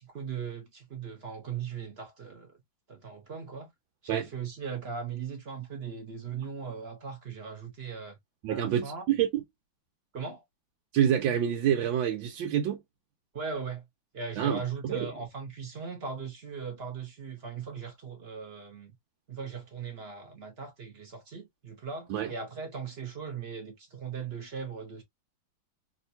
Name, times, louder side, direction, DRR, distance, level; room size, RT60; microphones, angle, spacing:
voice 1, 0.1-2.5 2.9-3.7 4.0-8.2 8.5-9.0 10.1-10.4 13.3-13.8 14.1-18.9 19.3-25.0, right 6 dB, 50° right, 0.7 m, -38 dB
voice 2, 8.4-9.4 10.9-12.8 14.4-15.1 22.1-22.3, right 9 dB, 75° right, 1.4 m, -27 dB
3.2 x 2.8 x 2.7 m
omnidirectional pair, 2.2 m